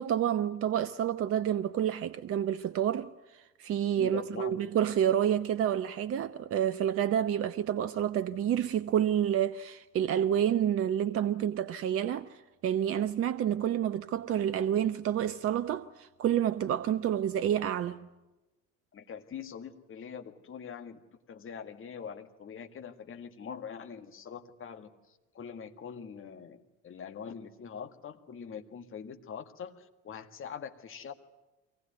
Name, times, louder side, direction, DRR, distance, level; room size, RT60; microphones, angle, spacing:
voice 1, 0.0-12.4 12.6-18.1, right 10 dB, 35° right, 0.7 m, -29 dB
voice 2, 3.9-4.6 18.9-21.0 21.3-24.9 25.3-31.1, left 7 dB, 35° left, 1.8 m, -43 dB
24.0 x 18.5 x 9.4 m
figure-of-eight pair, 55°, 38 cm